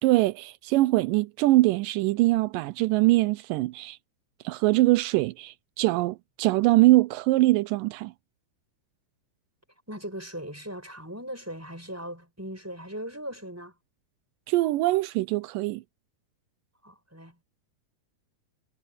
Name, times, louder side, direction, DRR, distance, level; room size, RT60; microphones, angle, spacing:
voice 1, 0.0-4.0 4.4-8.1 14.5-15.8, right 19 dB, 85° right, 2.2 m, -23 dB
voice 2, 9.9-13.7 16.8-17.4, equal, 5° right, 6.0 m, -39 dB
omnidirectional pair, 3.9 m